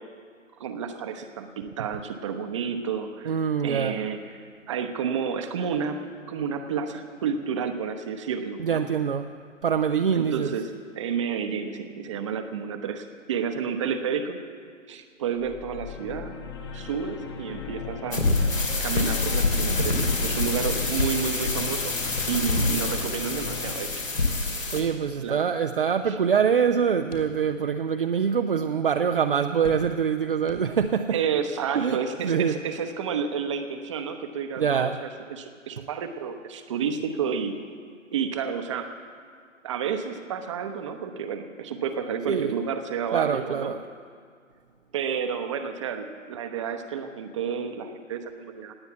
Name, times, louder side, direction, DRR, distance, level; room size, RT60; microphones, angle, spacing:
voice 1, 0.6-4.2 4.7-6.0 6.3-8.9 10.1-14.4 14.9-16.3 16.7-18.3 18.8-22.0 22.3-24.0 25.2-25.4 26.1-26.2 31.1-37.6 38.1-39.1 39.6-43.7 44.9-48.7, right 7 dB, 25° right, 7 dB, 0.9 m, -30 dB
voice 2, 3.2-4.0 8.6-9.3 9.6-10.5 24.7-31.2 31.7-32.5 34.6-35.0 42.3-42.6 43.1-43.8, right 7 dB, 45° right, 6 dB, 0.6 m, -24 dB
sound 1, 15.4-23.7, left 6 dB, 20° left, 0.8 m, -38 dB
sound 2, 18.1-24.8, left 3 dB, 75° left, 3.1 m, -26 dB
sound 3, 24.8-25.6 25.9-26.0 27.1-27.8 28.3-28.4 29.6-30.2 30.5-31.1, left 2 dB, 60° left, 3.0 m, -43 dB
18.5 x 9.0 x 8.1 m, 2.1 s
figure-of-eight pair, 135°, 39 cm